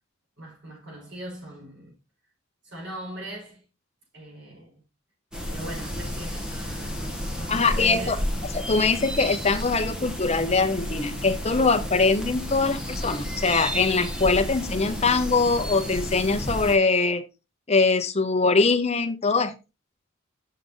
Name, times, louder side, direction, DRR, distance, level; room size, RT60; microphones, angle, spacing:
voice 1, 0.4-2.0 2.6-3.6 4.1-4.8 5.5-8.3, right 1 dB, 60° right, 5.1 m, -40 dB
sound 1, 5.3-16.8, equal, 5° right, 1.4 m, -32 dB
voice 2, 7.5-8.2 8.5-17.2 17.7-19.5, left 4 dB, 30° left, 0.9 m, -22 dB
6.7 x 6.4 x 3.8 m
head